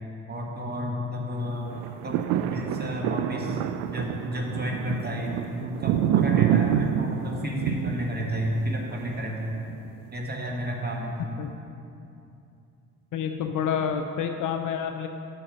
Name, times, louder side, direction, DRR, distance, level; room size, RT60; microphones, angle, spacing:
voice 1, 0.3-1.8 2.0-3.6 3.9-9.6 10.1-11.2, equal, 25° right, 0 dB, 1.6 m, -31 dB
sound 1, 1.7-10.0 10.5-10.6, right 10 dB, 55° right, 0.4 m, -27 dB
voice 2, 13.1-15.1, left 7 dB, 50° left, 6 dB, 0.6 m, -28 dB
7.8 x 5.7 x 5.3 m, 2.7 s
figure-of-eight pair, 45°, 42 cm